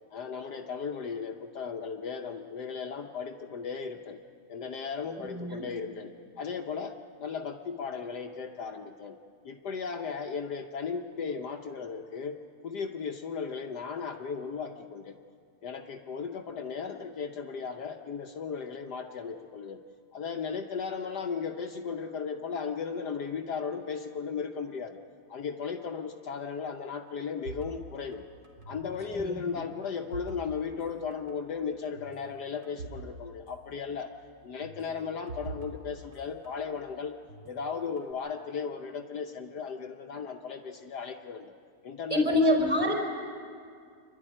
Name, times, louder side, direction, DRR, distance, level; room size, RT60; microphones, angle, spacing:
voice 1, 0.1-4.2 4.5-9.2 9.4-12.4 12.6-15.2 15.6-19.8 20.1-25.0 25.3-28.2 28.7-34.1 34.4-37.2 37.5-41.5 41.8-42.4, left 6 dB, 65° left, 3 dB, 1.4 m, -36 dB
voice 2, 5.2-5.6 29.1-29.3 42.1-42.9, left 1 dB, 15° right, 0 dB, 4.3 m, -25 dB
sound 1, 27.5-29.0 29.3-30.9 31.1-31.4 32.0-33.1 33.3-33.4 34.6-36.7 37.3-38.1, right 4 dB, 55° right, 2.6 m, -45 dB
26.5 x 12.5 x 9.9 m, 2.2 s
omnidirectional pair, 2.0 m